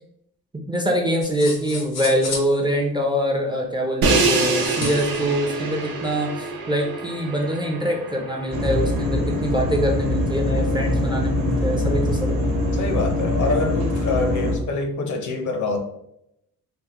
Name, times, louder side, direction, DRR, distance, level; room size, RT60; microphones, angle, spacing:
voice 1, 0.5-12.4, equal, 10° right, 0 dB, 0.4 m, -24 dB
sound 1, 1.2-2.5 4.6-5.2, left 3 dB, 80° left, 0.9 m, -32 dB
Crash cymbal, 4.0-10.0, right 3 dB, 70° right, 0.7 m, -26 dB
sound 2, 8.5-14.6, left 1 dB, 85° right, 1.1 m, -23 dB
voice 2, 12.7-15.8, left 3 dB, 50° left, 4 dB, 0.6 m, -25 dB
3.5 x 2.1 x 2.9 m, 0.80 s
cardioid pair, 105°, 37 cm